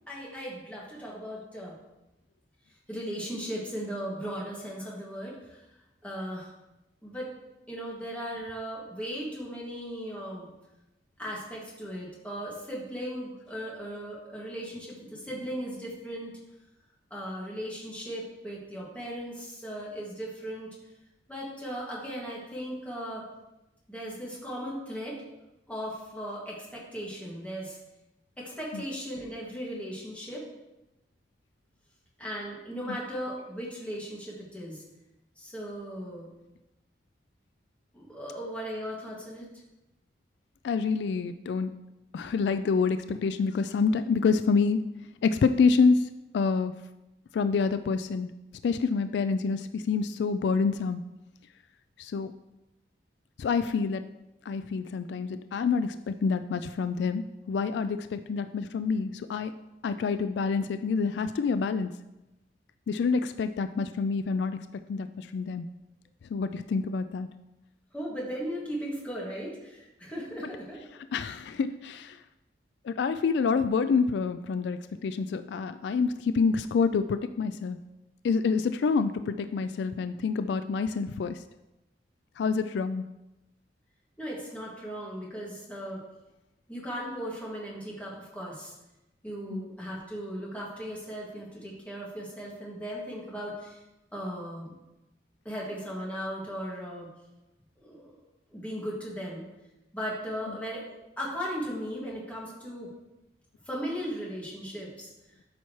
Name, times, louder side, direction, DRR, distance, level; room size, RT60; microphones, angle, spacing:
voice 1, 0.1-1.7 2.9-5.6 6.0-6.5 7.0-7.3 7.7-10.5 11.2-16.3 17.1-20.7 21.3-23.2 23.9-25.2 25.7-27.8 28.4-30.5 32.2-34.8 35.4-36.3 37.9-39.4 67.9-70.8 84.2-86.0 86.7-88.7 89.2-93.8 94.1-94.7 95.4-97.1 97.8-98.2 98.5-99.5 99.9-102.9 103.6-105.1, equal, 10° left, -5 dB, 2.1 m, -37 dB
voice 2, 40.6-41.8 42.1-44.8 45.2-46.8 47.3-48.3 48.6-51.0 52.0-52.3 53.4-54.1 54.5-59.5 59.8-61.9 62.9-64.6 64.9-65.7 66.3-67.3 71.1-72.2 72.8-77.8 78.2-81.4 82.4-83.1 89.5-89.7, left 5 dB, 70° left, 11 dB, 0.3 m, -27 dB
12.5 x 5.7 x 3.1 m, 0.97 s
head